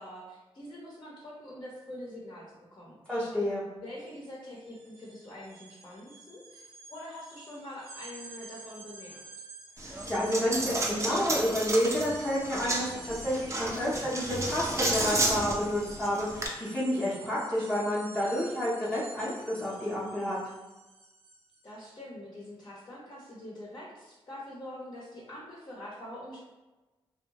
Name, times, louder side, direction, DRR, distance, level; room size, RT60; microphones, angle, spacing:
voice 1, 0.0-3.0 3.8-9.2 21.6-26.4, left 1 dB, 40° left, -5 dB, 0.7 m, -45 dB
voice 2, 3.1-3.7 9.8-20.4, equal, 10° left, -10 dB, 0.7 m, -30 dB
sound 1, 4.0-4.2 4.5-21.7, right 3 dB, 75° right, 0.7 m, -49 dB
Coin (dropping), 9.8-16.5, right 2 dB, 30° right, 0.5 m, -32 dB
2.6 x 2.1 x 2.8 m, 1.1 s
cardioid pair, 75°, 10 cm